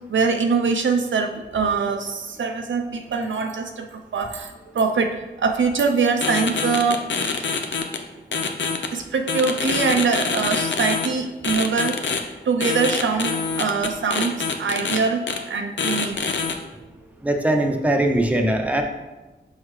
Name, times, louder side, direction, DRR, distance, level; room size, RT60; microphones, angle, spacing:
voice 1, 0.1-3.9 4.1-4.5 4.7-7.1 8.9-12.2 12.5-16.2, right 4 dB, 80° right, 5 dB, 0.6 m, -23 dB
sound 1, 6.2-8.0 8.3-8.9 9.3-11.1 11.4-12.2 12.6-15.0 15.3-15.4 15.8-16.5, left 5 dB, 75° left, 0.6 m, -25 dB
voice 2, 17.2-18.8, right 1 dB, 5° right, 3 dB, 0.7 m, -20 dB
5.8 x 5.6 x 3.2 m, 1.1 s
wide cardioid pair, 85°, 19 cm